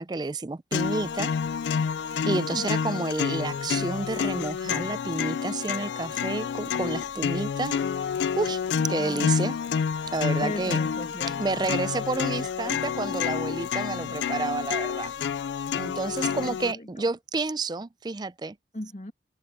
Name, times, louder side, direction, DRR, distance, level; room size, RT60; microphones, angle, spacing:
voice 1, 0.0-1.3 2.3-7.8 8.4-8.6 8.9-9.5 10.1-10.8 11.4-15.1 15.8-18.6, right 3 dB, 25° right, 0.4 m, -30 dB
sound 1, 0.7-16.7, left 6 dB, 80° left, 0.3 m, -29 dB
voice 2, 2.2-2.8 9.0-9.6 10.4-11.8 16.2-16.9 18.7-19.1, left 1 dB, 40° left, 2.4 m, -37 dB
head